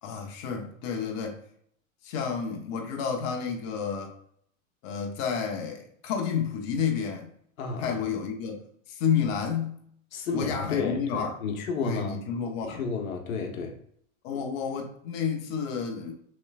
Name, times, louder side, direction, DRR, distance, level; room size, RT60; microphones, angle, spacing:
voice 1, 0.0-1.4 2.0-4.2 4.8-7.3 7.8-8.6 8.9-9.8 10.3-11.3 11.8-12.8 14.2-16.1, left 6 dB, 45° left, 2 dB, 1.0 m, -30 dB
voice 2, 7.6-8.0 10.1-12.2 12.6-13.8, left 5 dB, 80° left, 4 dB, 1.1 m, -31 dB
6.3 x 3.3 x 2.4 m, 0.64 s
hypercardioid pair, 130°, 40 cm